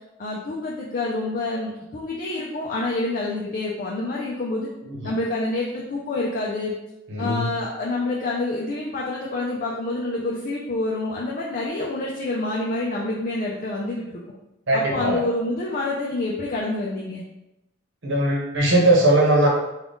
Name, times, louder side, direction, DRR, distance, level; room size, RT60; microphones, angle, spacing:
voice 1, 0.2-4.7 5.0-6.7 7.2-14.2 14.7-17.2, left 2 dB, 45° left, -3 dB, 0.5 m, -27 dB
voice 2, 7.1-7.5 14.7-15.2 18.0-19.5, right 1 dB, 65° right, -1 dB, 0.9 m, -19 dB
3.8 x 2.3 x 3.5 m, 0.92 s
head